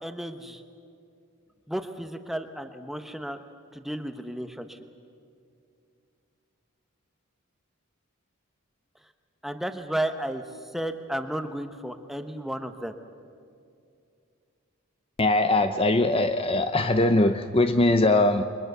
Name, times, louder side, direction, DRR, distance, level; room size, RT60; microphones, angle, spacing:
voice 1, 0.0-0.6 1.7-3.4 3.7-4.8 9.4-10.4 10.7-12.9, right 1 dB, ahead, 7 dB, 1.0 m, -33 dB
voice 2, 15.2-18.4, left 2 dB, 25° left, 8 dB, 0.6 m, -21 dB
29.0 x 23.0 x 6.9 m, 2.4 s
head